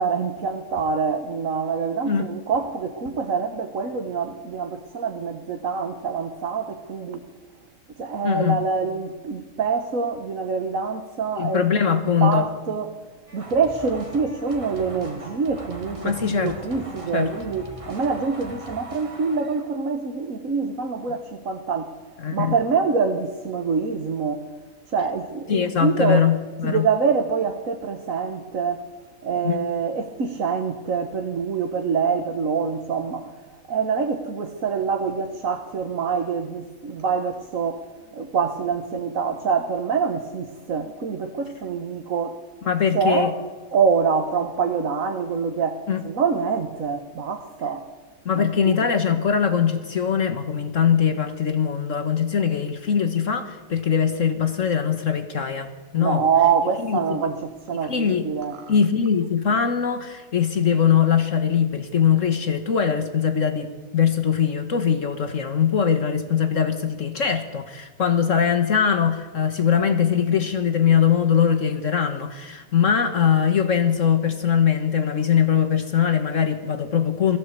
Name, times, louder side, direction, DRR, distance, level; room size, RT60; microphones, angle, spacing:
voice 1, 0.0-7.2 8.0-11.7 11.9-13.0 13.3-21.9 22.3-24.5 24.9-26.3 26.6-28.8 29.2-37.9 38.1-42.4 42.9-43.3 43.7-47.9 48.4-48.7 56.0-58.6, right 5 dB, 75° right, 1.8 m, -25 dB
voice 2, 8.2-8.6 11.4-12.5 16.0-16.6 17.1-17.3 22.2-22.5 25.5-26.9 29.4-29.6 42.7-43.3 45.9-46.0 48.2-56.2 56.9-57.0 57.9-58.2 58.7-77.4, left 7 dB, 65° left, 1.7 m, -21 dB
sound 1, 13.3-19.8, right 1 dB, 25° right, 2.4 m, -40 dB
21.5 x 16.0 x 8.3 m
omnidirectional pair, 1.4 m